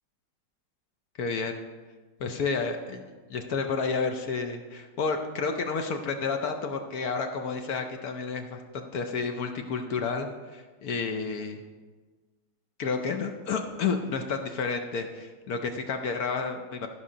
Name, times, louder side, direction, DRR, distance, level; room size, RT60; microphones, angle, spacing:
voice 1, 1.2-1.5 2.2-3.0 3.3-11.6 12.8-16.9, left 4 dB, 65° left, 5 dB, 1.1 m, -30 dB
13.0 x 5.6 x 4.9 m, 1.4 s
omnidirectional pair, 2.0 m